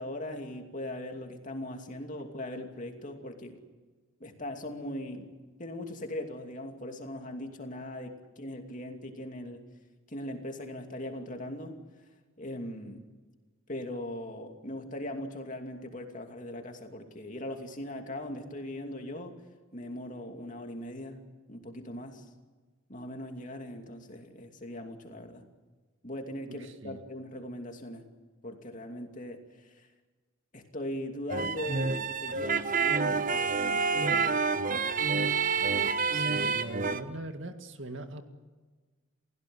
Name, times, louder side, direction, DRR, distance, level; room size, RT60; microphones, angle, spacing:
voice 1, 0.0-3.6 4.2-5.3 5.6-9.6 10.1-11.8 12.4-13.0 13.7-19.4 19.7-22.3 22.9-25.5 26.0-28.0 28.4-29.9 30.5-34.4, left 1 dB, 40° left, 4 dB, 2.7 m, -40 dB
voice 2, 26.5-27.0 36.1-38.3, right 2 dB, 65° right, 6 dB, 2.1 m, -41 dB
sound 1, 31.3-37.0, right 4 dB, 40° right, 1.0 m, -28 dB
28.5 x 16.5 x 7.9 m, 1.3 s
head